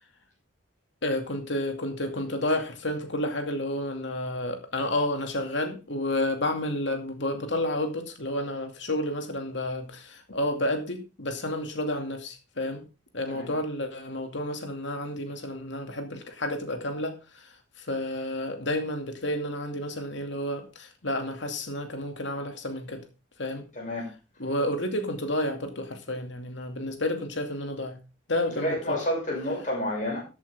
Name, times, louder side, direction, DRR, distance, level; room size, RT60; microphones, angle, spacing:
voice 1, 1.0-12.8 13.1-23.0 23.4-23.7 24.4-28.0 28.3-29.0, left 1 dB, 65° left, 2.4 m, -30 dB
voice 2, 23.7-24.1 28.5-30.2, left 1 dB, 40° left, 6.4 m, -29 dB
14.0 x 8.4 x 3.5 m
head